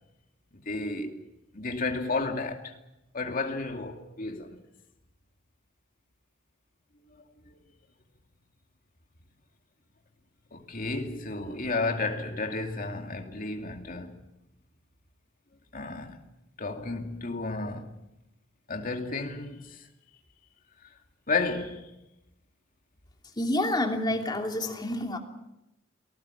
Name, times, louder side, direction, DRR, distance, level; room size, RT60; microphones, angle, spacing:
voice 1, 0.7-1.2 1.5-2.7 3.1-4.6 7.5-7.6 10.5-14.2 15.7-16.2 16.6-17.9 18.7-19.8 21.3-21.9, left 3 dB, 45° left, 2.5 m, -32 dB
voice 2, 23.4-25.2, left 1 dB, 20° left, 2.9 m, -28 dB
28.5 x 19.5 x 7.2 m
head